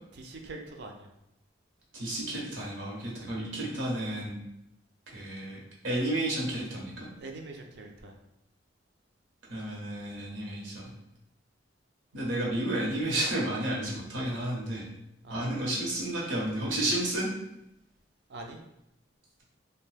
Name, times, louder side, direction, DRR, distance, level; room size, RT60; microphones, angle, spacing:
voice 1, 0.1-1.1 7.2-8.1 15.2-15.7 18.3-18.6, right 2 dB, 60° right, 2 dB, 0.4 m, -44 dB
voice 2, 1.9-4.4 5.1-7.1 9.5-10.8 12.1-14.9 15.3-17.3, right 1 dB, 85° right, -4 dB, 1.0 m, -31 dB
2.6 x 2.2 x 3.3 m, 0.83 s
head